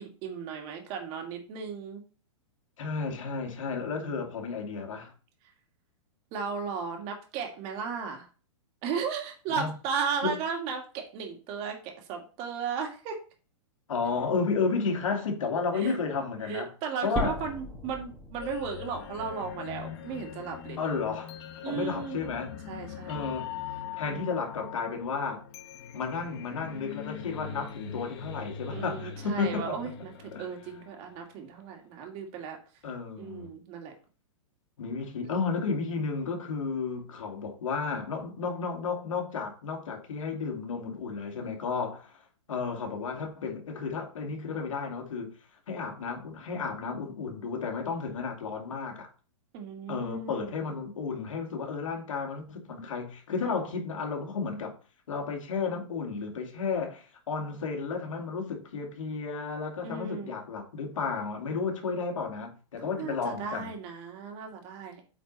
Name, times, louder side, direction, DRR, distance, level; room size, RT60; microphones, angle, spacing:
voice 1, 0.0-2.0 3.8-4.3 6.3-8.3 8.8-13.2 15.7-16.0 16.4-20.8 21.6-22.2 22.7-23.3 24.1-24.5 28.7-32.6 33.2-33.9 35.2-35.3 49.5-50.6 59.8-60.4 62.8-65.0, right 6 dB, 35° right, 2.1 m, -36 dB
voice 2, 2.8-5.1 9.5-9.7 10.2-10.4 13.9-16.7 17.0-17.4 20.8-21.3 21.6-22.5 23.1-23.5 24.0-25.4 25.9-29.8 30.3-30.5 32.8-33.6 34.8-42.2 42.5-45.3 45.7-49.1 49.9-54.8 55.1-63.8, left 5 dB, 80° left, 2.4 m, -32 dB
sound 1, 17.2-21.2 21.7-21.8 22.4-22.5 22.8-22.9 23.7-23.8, equal, ahead, 1.7 m, -39 dB
sound 2, 18.4-31.4, left 8 dB, 55° left, 1.4 m, -42 dB
8.6 x 4.6 x 4.1 m
hypercardioid pair, 145°, 16 cm